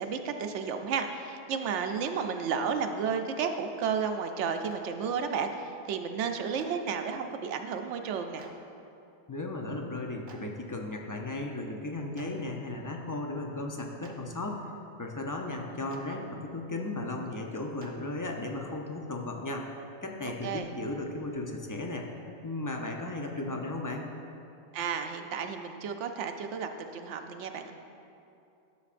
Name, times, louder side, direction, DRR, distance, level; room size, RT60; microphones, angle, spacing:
voice 1, 0.0-8.5 20.2-20.7 24.7-27.7, right 6 dB, 85° right, 6 dB, 0.9 m, -32 dB
Clapping, 4.6-4.8 6.6-6.7 8.4-8.5 10.3-10.4 12.1-12.3 14.0-14.1 15.9-16.0 17.8-17.9, right 3 dB, 50° right, 0.8 m, -49 dB
voice 2, 9.3-14.7 15.0-19.7 20.0-22.1 22.4-24.1, left 2 dB, 30° left, 1 dB, 0.4 m, -35 dB
12.5 x 6.9 x 2.5 m, 2.7 s
omnidirectional pair, 1.2 m